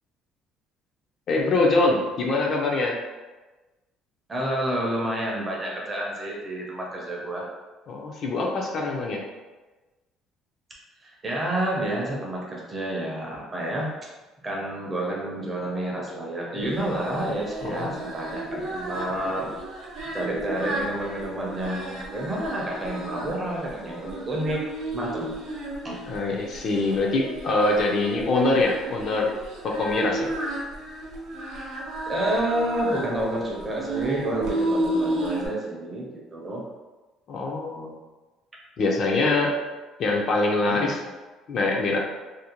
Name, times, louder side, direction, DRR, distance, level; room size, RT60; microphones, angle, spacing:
voice 1, 1.3-2.9 7.9-9.2 17.6-18.0 26.1-29.3 29.8-30.3 37.3-37.9 38.8-39.5 40.0-41.0 41.5-42.0, left 2 dB, 40° left, -1 dB, 0.3 m, -24 dB
voice 2, 4.3-7.5 11.0-13.9 14.4-19.8 20.1-25.3 25.8-26.0 32.1-36.6 40.6-40.9, right 1 dB, 20° right, -3 dB, 0.5 m, -29 dB
Singing, 16.7-35.5, right 1 dB, 75° right, 0.7 m, -33 dB
2.5 x 2.1 x 2.8 m, 1.2 s
cardioid pair, 170°, 0 cm